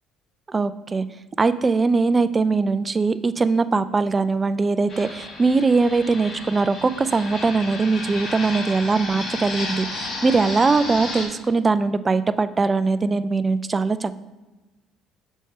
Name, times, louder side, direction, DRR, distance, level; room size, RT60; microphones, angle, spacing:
voice 1, 0.5-1.1 1.4-14.2, right 4 dB, 30° right, 13 dB, 0.3 m, -21 dB
Fixed-wing aircraft airplane, 4.9-11.3, left 2 dB, 55° left, 1.8 m, -33 dB
6.2 x 4.2 x 3.6 m, 1.1 s
hypercardioid pair, 65°, 0 cm